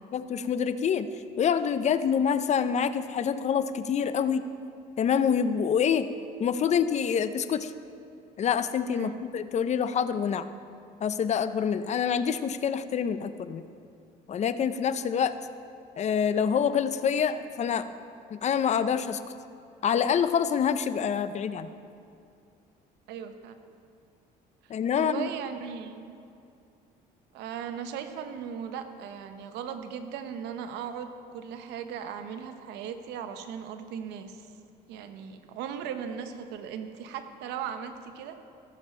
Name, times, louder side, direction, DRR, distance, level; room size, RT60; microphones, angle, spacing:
voice 1, 0.0-4.4 5.0-6.1 6.4-7.7 8.4-10.5 11.0-13.6 14.3-15.4 16.0-17.9 18.3-19.2 19.8-21.7 24.7-25.3, left 7 dB, 40° left, 12 dB, 0.5 m, -26 dB
voice 2, 23.1-23.6 24.9-26.2 27.3-34.5 34.9-38.3, right 8 dB, 90° right, 8 dB, 0.8 m, -38 dB
16.5 x 7.2 x 4.4 m, 2.5 s
cardioid pair, 110°, 17 cm